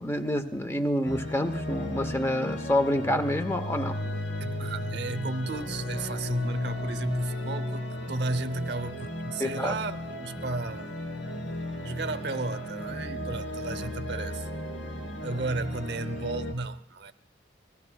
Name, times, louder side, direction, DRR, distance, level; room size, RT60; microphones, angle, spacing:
voice 1, 0.0-4.0 9.4-9.7, left 1 dB, 15° left, 0.8 m, -28 dB
sound 1, 1.0-16.5, left 1 dB, 85° left, 2.5 m, -34 dB
voice 2, 4.4-11.0 11.8-14.5 15.2-17.1, right 3 dB, 70° right, 0.7 m, -34 dB
29.5 x 21.5 x 2.3 m
head